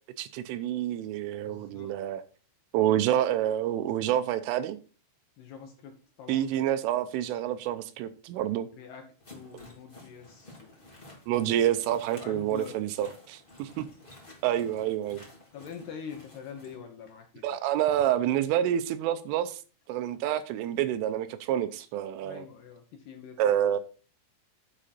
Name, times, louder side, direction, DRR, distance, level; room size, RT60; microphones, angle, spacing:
voice 1, 0.2-2.2 2.7-4.8 6.3-8.7 11.3-13.8 14.4-15.2 17.4-19.6 19.9-22.5 23.4-23.8, right 11 dB, 85° right, 3.1 m, -28 dB
voice 2, 1.4-1.9 5.4-6.5 8.7-10.8 12.2-12.8 15.5-17.4 22.2-23.4, left 7 dB, 70° left, 2.6 m, -45 dB
sound 1, 9.2-16.8, left 2 dB, 20° left, 1.4 m, -52 dB
10.0 x 7.5 x 4.2 m
omnidirectional pair, 6.0 m